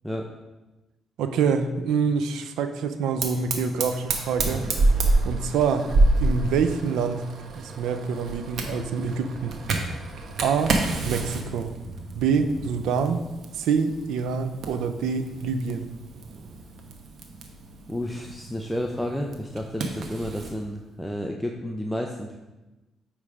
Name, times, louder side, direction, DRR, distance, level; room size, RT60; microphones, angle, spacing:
voice 1, 1.2-4.7 5.2-5.9 6.2-7.2 7.6-9.5 10.4-10.7 11.0-11.7 12.2-13.2 13.6-15.8, right 6 dB, 85° right, 9 dB, 0.5 m, -26 dB
Fire, 3.2-20.5, right 2 dB, 65° right, 1.0 m, -29 dB
voice 2, 17.9-22.4, equal, ahead, 1 dB, 0.6 m, -31 dB
8.7 x 3.3 x 4.9 m, 1.1 s
cardioid pair, 90°, 0 cm